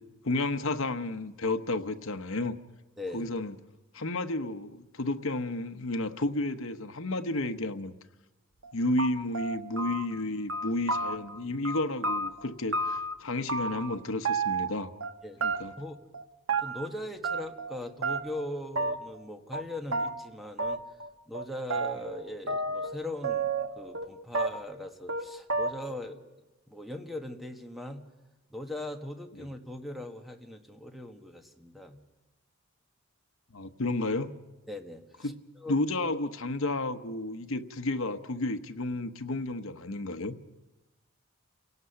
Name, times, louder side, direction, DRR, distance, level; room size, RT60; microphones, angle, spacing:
voice 1, 0.2-2.5 3.1-3.5 3.9-8.0 8.7-14.9 15.4-15.7 33.5-34.3 35.2-40.3, left 2 dB, 75° left, 8 dB, 1.0 m, -32 dB
voice 2, 3.0-3.3 15.2-15.4 15.8-15.9 16.6-20.8 21.3-26.2 26.7-28.0 28.5-32.0 34.7-35.8, left 1 dB, ahead, 4 dB, 1.4 m, -40 dB
sound 1, 8.6-8.7 9.0-10.2 10.5-11.4 11.6-13.1 13.5-14.0 14.2-15.1 15.4-15.9 16.1-16.9 17.2-17.8 18.0-18.5 18.8-19.2 19.5-19.6 19.9-20.1 20.6-21.1 21.3-23.0 23.2-24.1 24.3-24.8 25.1-25.2 25.5-26.0, right 3 dB, 75° right, 1.2 m, -31 dB
29.0 x 18.0 x 5.8 m, 1.1 s
head